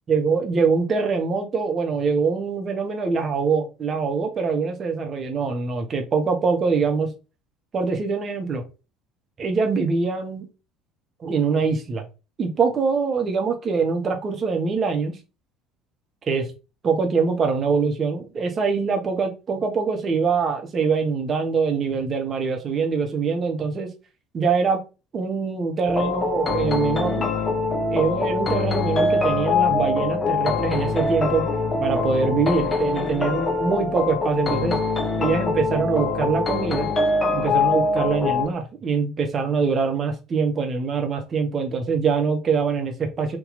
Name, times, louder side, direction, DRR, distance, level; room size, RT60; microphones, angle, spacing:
voice 1, 0.1-7.1 7.7-8.6 9.4-10.4 11.2-12.1 12.4-15.2 16.3-16.5 16.8-23.9 24.3-24.8 25.1-27.3 27.9-31.5 31.8-34.8 35.2-36.9 37.3-43.4, right 5 dB, 35° right, 3 dB, 0.8 m, -24 dB
sound 1, 25.9-38.5, left 3 dB, 25° left, 0.6 m, -23 dB
2.8 x 2.3 x 3.8 m, 0.30 s
figure-of-eight pair, 60°, 0 cm